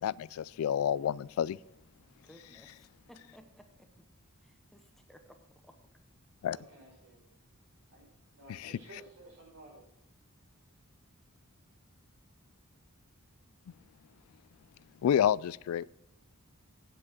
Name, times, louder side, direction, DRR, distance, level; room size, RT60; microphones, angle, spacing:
voice 1, 0.0-1.6 6.4-6.6 15.0-15.9, left 9 dB, 75° left, 18 dB, 0.3 m, -29 dB
voice 2, 2.1-3.9 4.4-5.4 5.6-5.7, equal, ahead, 5 dB, 0.7 m, -58 dB
voice 3, 6.5-7.2 7.9-8.1 8.3-9.9, right 1 dB, 70° right, -2 dB, 5.2 m, -54 dB
9.0 x 8.3 x 5.9 m, 0.79 s
head